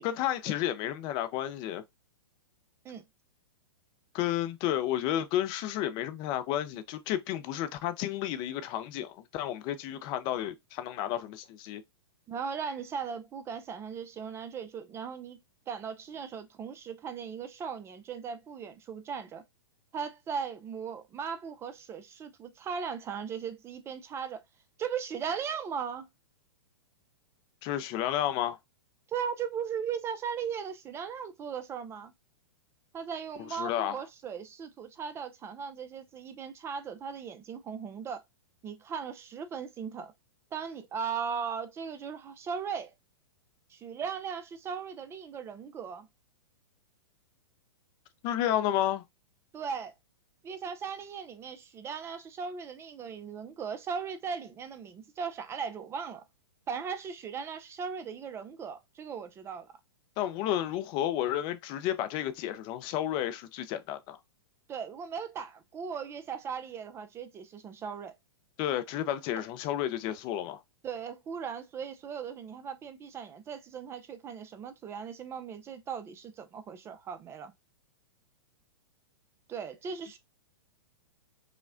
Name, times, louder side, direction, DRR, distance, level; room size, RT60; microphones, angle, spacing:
voice 1, 0.0-1.8 4.1-11.8 27.6-28.6 33.4-34.0 48.2-49.0 60.2-64.2 68.6-70.6, left 12 dB, 35° left, 0.5 m, -31 dB
voice 2, 12.3-15.4 15.7-19.4 19.9-24.4 24.8-26.1 29.1-32.1 32.9-38.2 38.6-40.1 40.5-42.9 43.7-46.1 49.5-49.9 50.4-56.2 56.7-59.7 64.7-68.1 69.3-69.4 70.8-77.5 79.5-80.2, right 6 dB, 20° right, 0.4 m, -38 dB
4.9 x 2.1 x 2.4 m
hypercardioid pair, 110°, 13 cm